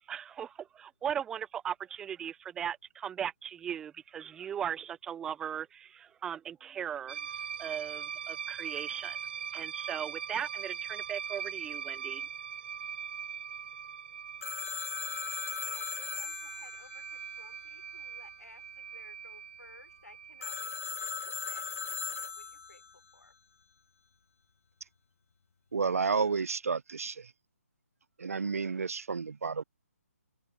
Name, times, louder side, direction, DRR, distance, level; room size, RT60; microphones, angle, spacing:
voice 1, 0.1-7.2 7.6-9.2 9.5-12.3, right 9 dB, 5° right, 0.4 m, -38 dB
sound 1, 7.1-20.8, right 7 dB, 40° right, 1.6 m, -41 dB
Telephone, 14.4-18.0 20.4-22.9, left 5 dB, 60° left, 0.9 m, -38 dB
voice 2, 15.6-23.3, left 2 dB, 75° left, 5.5 m, -58 dB
voice 3, 25.7-27.3 28.2-29.6, right 5 dB, 65° right, 0.6 m, -31 dB
figure-of-eight pair, 140°, 9 cm